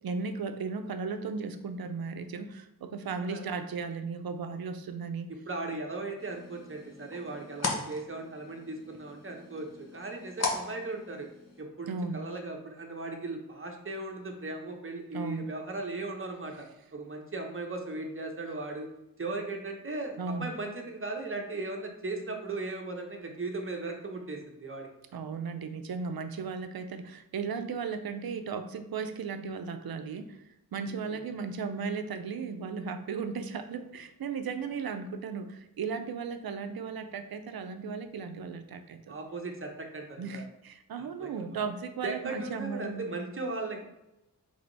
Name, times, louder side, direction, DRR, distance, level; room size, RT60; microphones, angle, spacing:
voice 1, 0.0-5.3 11.9-12.2 15.1-15.5 20.2-20.5 25.1-30.4 30.7-39.1 40.2-43.1, right 5 dB, 70° right, 8 dB, 0.5 m, -36 dB
voice 2, 3.2-3.5 5.3-11.3 11.6-16.7 16.9-18.9 19.2-24.9 31.1-31.2 39.1-40.4 41.0-41.6 42.0-43.9, right 2 dB, 35° right, 2 dB, 0.8 m, -37 dB
sound 1, 6.2-11.6, left 3 dB, 45° left, 0.8 m, -38 dB
3.4 x 3.4 x 3.9 m, 0.92 s
wide cardioid pair, 90°, 38 cm